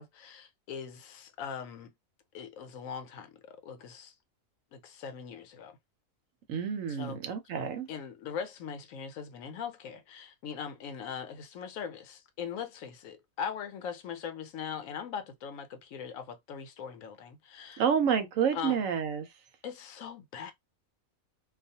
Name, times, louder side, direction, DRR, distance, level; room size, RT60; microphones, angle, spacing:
voice 1, 0.0-1.9 2.3-4.1 4.7-5.8 6.9-7.2 7.9-17.8 18.5-18.8 19.6-20.5, left 7 dB, 75° left, 1.0 m, -40 dB
voice 2, 6.5-7.9 17.8-19.3, right 7 dB, 75° right, 1.0 m, -29 dB
2.4 x 2.3 x 2.7 m
omnidirectional pair, 1.4 m